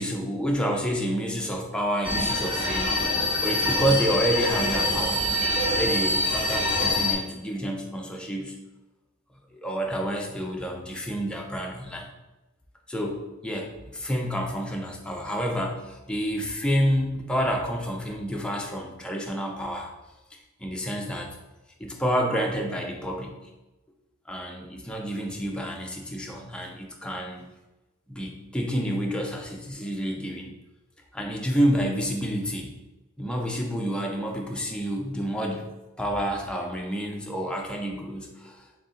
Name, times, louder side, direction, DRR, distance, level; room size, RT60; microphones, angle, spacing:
voice 1, 0.0-2.9 3.4-5.2 5.8-8.6 9.5-12.1 12.9-19.9 20.6-21.3 21.8-23.4 24.3-27.5 28.1-30.5 31.1-32.8 33.2-38.6, equal, 5° left, 0 dB, 0.5 m, -29 dB
sound 1, 2.0-7.1, left 1 dB, 25° right, 0.9 m, -25 dB
3.4 x 2.6 x 3.9 m, 1.1 s
head